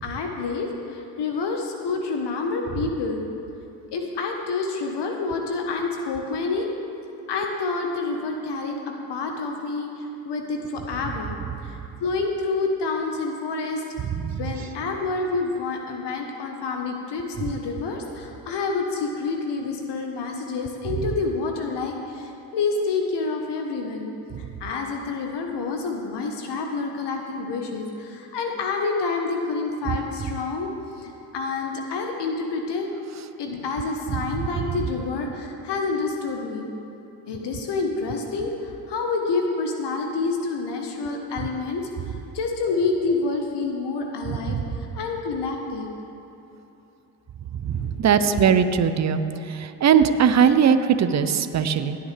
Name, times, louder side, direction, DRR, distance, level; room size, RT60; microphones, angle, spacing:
voice 1, 0.0-3.2 3.9-6.7 7.3-11.4 11.6-13.8 14.4-24.1 24.4-30.7 31.0-32.9 33.4-36.7 37.3-44.6 44.9-45.9 47.7-48.5, left 4 dB, 55° left, 2 dB, 1.4 m, -28 dB
voice 2, 47.6-49.2 49.6-52.0, right 7 dB, 35° right, 10 dB, 0.8 m, -19 dB
17.0 x 9.2 x 3.4 m, 2.9 s
hypercardioid pair, 60°, 48 cm